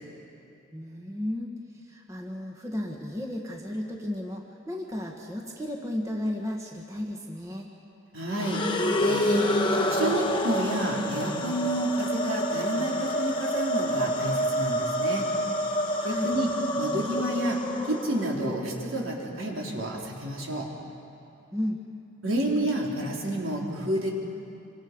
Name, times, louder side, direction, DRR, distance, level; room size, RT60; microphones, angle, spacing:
voice 1, 0.7-7.7 16.0-16.3 21.5-21.8, left 1 dB, 15° right, 0 dB, 1.5 m, -34 dB
voice 2, 8.1-8.6 9.0-15.3 16.0-16.5 16.8-20.7 22.2-24.1, right 1 dB, 70° right, -2 dB, 3.9 m, -29 dB
sound 1, 8.3-18.6, equal, 20° left, 1.2 m, -28 dB
27.5 x 25.5 x 5.3 m, 2.7 s
head